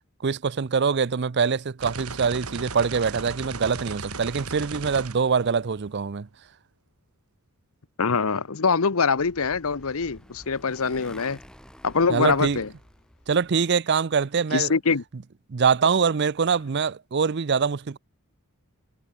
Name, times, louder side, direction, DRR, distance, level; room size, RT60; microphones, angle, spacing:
voice 1, 0.2-6.3 12.1-12.6 13.3-14.7 15.5-18.0, right 5 dB, 50° right, 0.5 m, -24 dB
sound 1, 1.8-6.0, right 4 dB, 85° right, 4.4 m, -36 dB
voice 2, 8.0-11.4 11.8-12.7 14.5-15.0, left 5 dB, 75° left, 0.9 m, -24 dB
Motorcycle, 9.0-13.6, equal, 5° left, 7.5 m, -49 dB
head